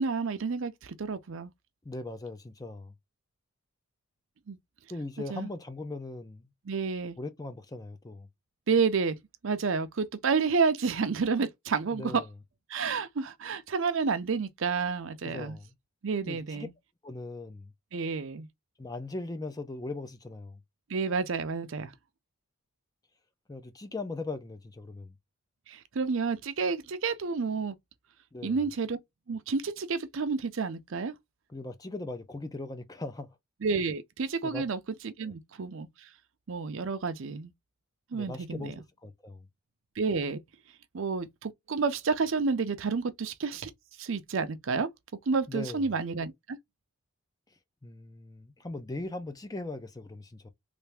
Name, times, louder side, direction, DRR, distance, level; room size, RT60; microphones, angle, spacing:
voice 1, 0.0-1.5 4.5-4.6 5.3-5.5 6.7-7.2 8.7-9.2 9.4-12.2 12.7-15.6 16.0-16.7 17.9-18.5 20.9-21.9 25.7-27.8 28.4-29.0 29.3-31.1 33.6-36.1 36.5-37.5 38.1-38.7 40.0-40.4 40.9-43.7 44.0-44.9 45.3-46.6, right 4 dB, 65° right, 0.5 m, -30 dB
voice 2, 1.8-2.9 4.9-6.5 7.2-8.3 11.9-12.3 15.2-15.7 16.3-16.7 17.0-17.7 18.8-20.6 23.5-25.1 28.3-28.6 31.5-33.3 34.4-34.6 35.2-35.3 38.1-38.7 39.0-39.5 45.5-45.8 47.8-50.5, left 2 dB, 15° left, 0.4 m, -39 dB
3.3 x 2.6 x 3.3 m
head